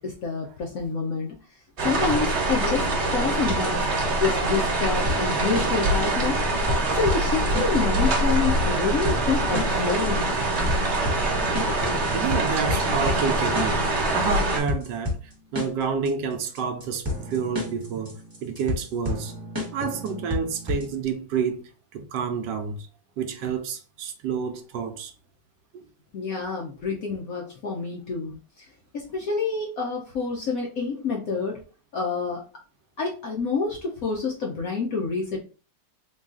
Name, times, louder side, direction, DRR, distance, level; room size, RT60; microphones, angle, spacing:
voice 1, 0.0-1.3 1.8-2.9 3.1-3.8 4.2-6.4 6.9-10.4 11.9-12.0 26.1-28.4 28.9-31.6 31.9-32.4 33.0-35.4, left 5 dB, 65° left, 0.9 m, -27 dB
sound 1, 1.8-14.6, right 2 dB, 45° right, 1.0 m, -24 dB
sound 2, 5.1-21.0, left 2 dB, 15° right, 0.7 m, -32 dB
voice 2, 12.1-15.2 15.5-18.1 18.4-19.3 19.7-22.9 23.2-25.1, right 6 dB, 75° right, 1.1 m, -29 dB
3.9 x 2.4 x 3.6 m
omnidirectional pair, 2.1 m